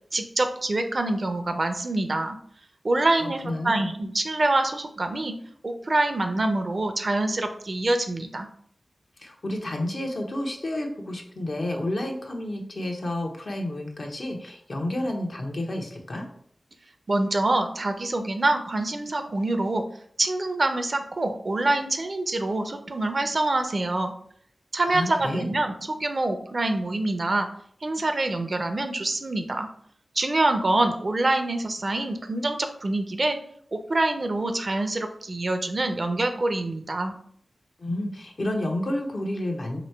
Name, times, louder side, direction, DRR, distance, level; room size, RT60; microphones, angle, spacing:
voice 1, 0.1-2.4 2.8-5.3 5.6-8.5 17.1-19.8 20.2-24.1 24.7-27.5 27.8-29.7 30.1-33.4 33.7-37.1, right 2 dB, 55° right, 7 dB, 0.5 m, -25 dB
voice 2, 3.2-3.9 9.2-16.3 24.8-25.5 37.8-39.8, left 1 dB, 60° left, 2 dB, 0.8 m, -30 dB
3.0 x 2.7 x 4.4 m, 0.63 s
cardioid pair, 40°, 0 cm